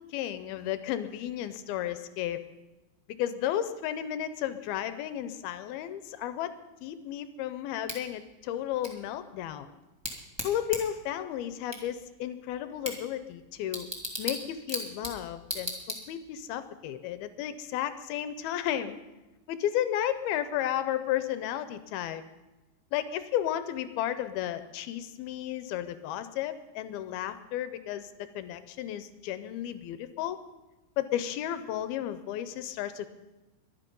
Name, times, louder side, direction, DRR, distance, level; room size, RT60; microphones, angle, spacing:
voice 1, 0.0-2.4 3.1-6.5 6.8-9.8 10.4-13.9 14.2-19.0 19.5-22.2 22.9-30.4 31.0-33.1, left 11 dB, 80° left, 12 dB, 2.6 m, -33 dB
Bicycle / Tick, 7.9-16.4, equal, 10° right, 1.1 m, -40 dB
23.0 x 10.5 x 5.3 m, 1.1 s
omnidirectional pair, 4.5 m